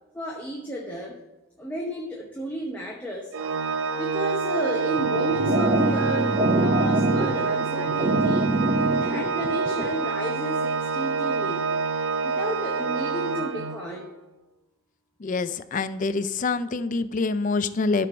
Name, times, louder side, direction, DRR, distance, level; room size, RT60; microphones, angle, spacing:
voice 1, 0.1-1.2 1.6-3.4 4.0-8.5 8.9-11.6 12.2-14.1, equal, 10° left, -2 dB, 0.9 m, -33 dB
Organ, 3.3-14.1, right 4 dB, 85° right, 0.6 m, -27 dB
sound 1, 5.0-10.0, right 2 dB, 30° right, 0.4 m, -24 dB
voice 2, 15.2-18.1, left 3 dB, 40° left, 12 dB, 0.4 m, -26 dB
12.5 x 4.6 x 5.1 m, 1.0 s
head